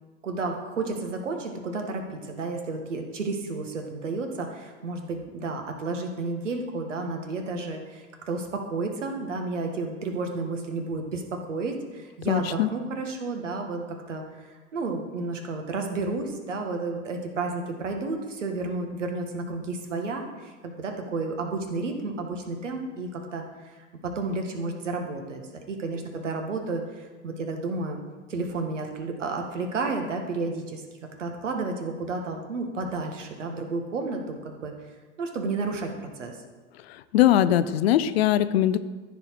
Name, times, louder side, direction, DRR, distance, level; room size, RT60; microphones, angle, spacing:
voice 1, 0.2-14.2 14.5-25.4 25.7-28.0 28.3-30.8 31.2-34.7 35.2-36.4, right 3 dB, 75° right, 4 dB, 1.6 m, -31 dB
voice 2, 12.3-12.7 37.1-38.8, left 12 dB, 55° left, 13 dB, 0.6 m, -21 dB
14.5 x 4.9 x 4.7 m, 1.3 s
figure-of-eight pair, 85°, 38 cm